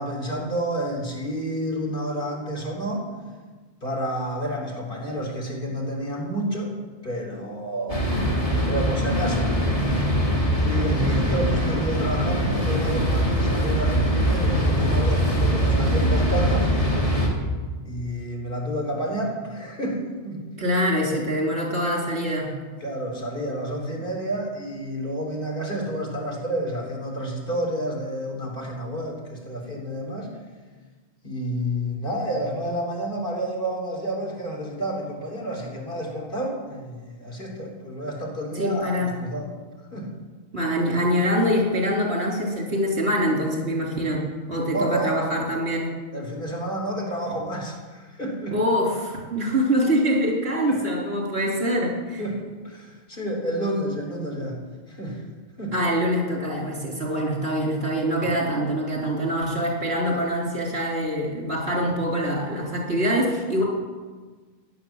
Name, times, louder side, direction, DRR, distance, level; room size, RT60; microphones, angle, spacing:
voice 1, 0.0-3.1 3.8-6.8 7.0-8.1 8.7-10.0 10.6-16.7 17.9-20.7 22.8-30.3 31.2-39.5 39.9-40.2 44.7-45.3 46.1-48.6 50.6-50.8 52.2-55.3 55.6-55.7 58.2-58.3, right 1 dB, 55° left, 0 dB, 3.7 m, -30 dB
sound 1, 7.9-17.3, equal, 35° left, 3.0 m, -22 dB
voice 2, 10.7-11.3 20.6-22.5 38.6-39.2 40.5-45.9 48.5-52.2 55.7-63.6, equal, 70° right, -2 dB, 3.8 m, -24 dB
16.0 x 10.5 x 7.3 m, 1.4 s
omnidirectional pair, 1.1 m